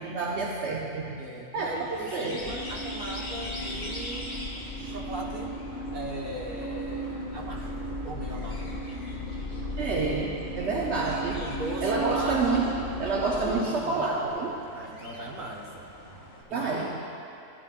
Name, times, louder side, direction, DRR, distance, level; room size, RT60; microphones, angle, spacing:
voice 1, 0.0-1.2 1.5-2.4 9.8-11.4 11.8-14.6 16.5-17.0, right 3 dB, 65° right, -3 dB, 1.1 m, -28 dB
voice 2, 1.2-4.4 4.7-5.5 5.9-8.8 10.9-12.4 13.4-14.4 14.7-15.9 16.5-16.7, right 1 dB, 40° right, -2 dB, 1.3 m, -39 dB
sound 1, 1.6-16.4, left 1 dB, 50° left, 1.9 m, -44 dB
sound 2, 2.4-14.1, right 1 dB, 70° left, 3.0 m, -36 dB
sound 3, 7.8-13.4, left 6 dB, 25° right, 1.6 m, -45 dB
16.0 x 10.5 x 2.5 m, 2.6 s
omnidirectional pair, 1.3 m